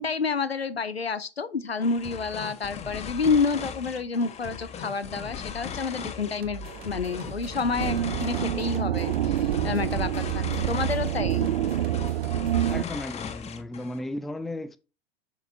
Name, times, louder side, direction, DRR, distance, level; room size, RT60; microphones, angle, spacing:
voice 1, 0.0-9.4 9.6-11.5, left 4 dB, 90° left, 0.7 m, -29 dB
sound 1, 1.8-14.0, left 7 dB, 20° left, 0.9 m, -38 dB
sound 2, 6.4-12.9, right 4 dB, 30° right, 1.1 m, -41 dB
sound 3, 7.8-12.8, right 12 dB, 65° right, 0.5 m, -27 dB
voice 2, 12.7-14.8, left 1 dB, ahead, 0.3 m, -35 dB
7.1 x 6.4 x 2.6 m
figure-of-eight pair, 90°, 30 cm